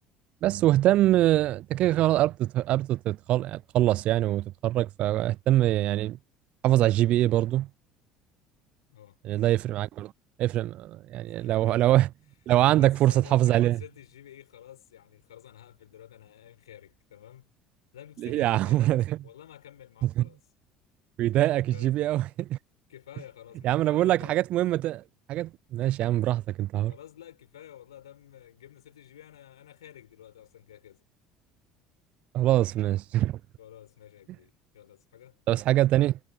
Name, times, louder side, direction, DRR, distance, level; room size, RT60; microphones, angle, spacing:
voice 1, 0.4-6.2 6.6-7.7 9.2-10.1 10.4-12.1 12.5-13.8 18.2-19.2 20.0-20.2 21.2-22.6 23.6-25.0 25.3-26.9 32.3-33.4 35.5-36.2, right 14 dB, 55° right, 0.5 m, -24 dB
voice 2, 11.3-12.0 12.6-17.5 17.9-18.9 19.2-20.4 21.6-22.0 22.9-24.4 26.9-31.0 33.6-35.4, left 11 dB, 85° left, 4.9 m, -50 dB
hypercardioid pair, 65°, 3 cm